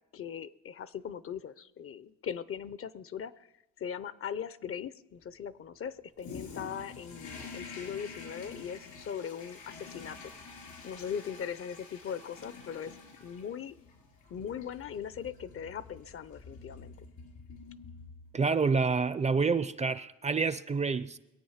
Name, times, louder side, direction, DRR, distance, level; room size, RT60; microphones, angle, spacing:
voice 1, 0.1-3.5 3.8-10.2 10.8-12.9 13.2-13.8 14.3-16.9, left 8 dB, 45° left, 0.6 m, -39 dB
Toilet flush, 6.2-18.5, left 4 dB, 75° left, 3.9 m, -48 dB
voice 2, 18.3-21.2, right 4 dB, 25° right, 0.5 m, -28 dB
22.5 x 8.6 x 5.7 m
cardioid pair, 90°, 30 cm